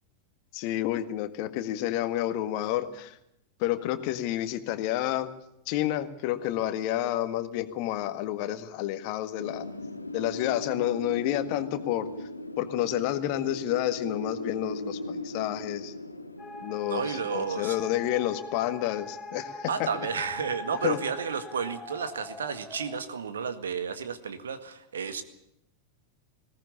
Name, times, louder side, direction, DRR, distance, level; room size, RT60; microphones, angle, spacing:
voice 1, 0.5-3.2 3.6-5.3 5.7-9.7 10.1-12.1 12.6-15.9 16.6-19.9 20.8-21.0, left 13 dB, 45° left, 10 dB, 1.7 m, -30 dB
Wind, 9.4-18.1, left 2 dB, 85° left, 1.4 m, -38 dB
sound 1, 16.4-23.0, left 2 dB, 15° left, 5.5 m, -42 dB
voice 2, 16.9-17.7 19.7-25.2, right 6 dB, 65° right, 11 dB, 1.8 m, -32 dB
20.5 x 17.5 x 8.7 m, 0.80 s
figure-of-eight pair, 90°, 0 cm